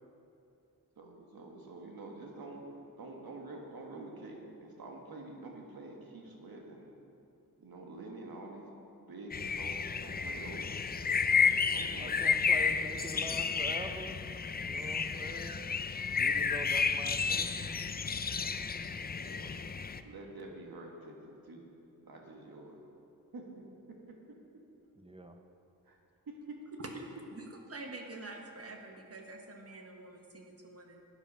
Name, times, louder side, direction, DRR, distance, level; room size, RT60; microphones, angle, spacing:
voice 1, 1.0-2.7 3.0-6.9 7.6-8.7 9.1-10.7 11.1-12.2 13.1-13.4 13.7-13.8 16.7-17.2 19.1-19.6 20.0-21.7 22.0-22.8 23.3-24.2 25.9-26.0 26.3-26.8, right 2 dB, 90° right, 0 dB, 1.8 m, -48 dB
sound 1, 9.3-20.0, left 6 dB, 30° left, 0.4 m, -31 dB
voice 2, 12.0-14.2 14.6-15.7 16.2-17.9 25.0-25.4, right 1 dB, 15° right, 5 dB, 0.6 m, -45 dB
voice 3, 27.3-31.0, right 3 dB, 40° right, 2 dB, 1.4 m, -47 dB
12.0 x 9.3 x 5.5 m, 2.8 s
wide cardioid pair, 145°, 35 cm